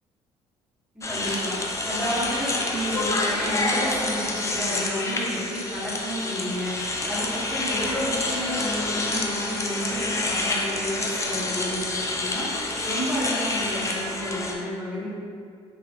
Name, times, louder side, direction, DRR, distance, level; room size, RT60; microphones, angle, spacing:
voice 1, 0.9-1.5 1.8-6.7 7.1-12.5 12.8-15.1, equal, 5° right, -9 dB, 1.2 m, -30 dB
sound 1, 1.0-14.5, left 2 dB, 20° left, 0.4 m, -28 dB
2.8 x 2.3 x 2.8 m, 2.2 s
hypercardioid pair, 60°, 14 cm